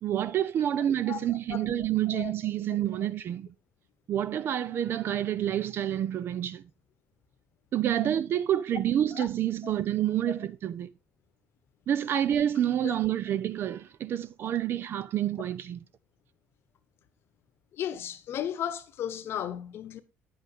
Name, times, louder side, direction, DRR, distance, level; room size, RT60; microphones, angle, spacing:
voice 1, 0.0-3.5 4.1-6.6 7.7-10.9 11.9-15.8, right 11 dB, 55° right, 0.6 m, -28 dB
voice 2, 1.1-1.7 2.1-2.3 9.1-9.3 9.6-9.7 12.8-13.0 17.7-20.0, left 10 dB, 60° left, 1.0 m, -35 dB
9.3 x 8.0 x 3.6 m
cardioid pair, 105°, 5 cm